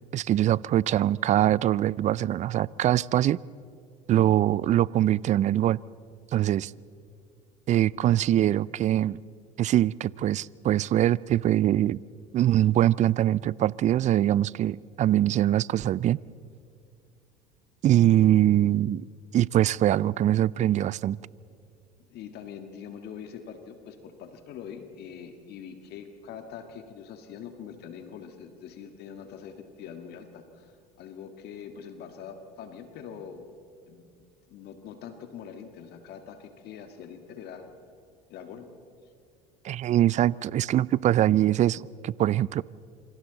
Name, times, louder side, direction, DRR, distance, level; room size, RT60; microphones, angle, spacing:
voice 1, 0.1-3.4 4.1-5.8 6.3-6.7 7.7-9.2 9.6-12.0 12.3-16.2 17.8-19.0 19.3-21.2 39.6-42.6, right 12 dB, 35° right, 0.4 m, -23 dB
voice 2, 18.1-18.5 21.5-21.6 22.1-33.4 33.9-34.1 34.5-37.7 38.3-38.7, left 7 dB, 55° left, 1.9 m, -43 dB
27.5 x 25.5 x 4.0 m
hypercardioid pair, 75°, 20 cm